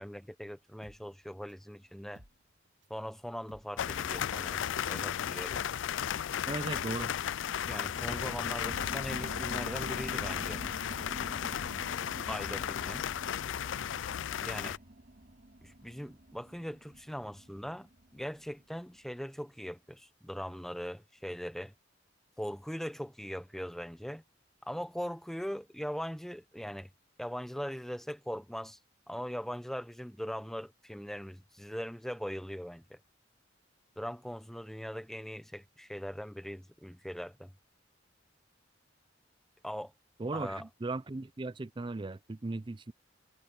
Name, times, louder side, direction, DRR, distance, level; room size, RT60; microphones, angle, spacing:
voice 1, 0.0-2.2 2.9-5.6 7.7-10.6 12.3-13.0 14.4-14.8 15.6-21.7 22.4-24.2 24.6-26.9 27.2-28.8 29.1-33.0 34.0-37.5 39.6-39.9 40.3-40.7, equal, ahead, 0.9 m, -40 dB
sound 1, 0.8-3.0 3.3-11.0 11.3-11.4, equal, 65° right, 4.0 m, -59 dB
sound 2, 3.8-14.8, left 9 dB, 70° left, 0.4 m, -35 dB
voice 2, 6.5-7.1 40.2-42.9, right 2 dB, 25° right, 0.5 m, -37 dB
sound 3, 7.4-18.5 19.0-19.1, right 1 dB, 50° right, 4.8 m, -47 dB
head